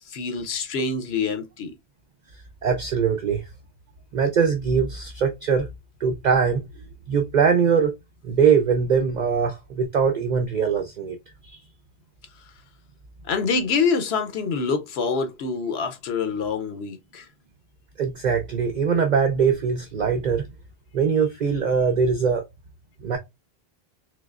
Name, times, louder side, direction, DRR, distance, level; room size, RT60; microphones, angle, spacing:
voice 1, 0.1-1.7 13.3-17.2, left 5 dB, 85° left, 1.0 m, -26 dB
voice 2, 2.6-3.4 4.1-5.7 6.0-6.6 7.1-7.9 8.2-11.2 11.4-11.6 18.0-20.4 20.9-22.4 23.0-23.2, right 6 dB, 50° right, 0.6 m, -22 dB
3.9 x 3.1 x 2.3 m
omnidirectional pair, 1.0 m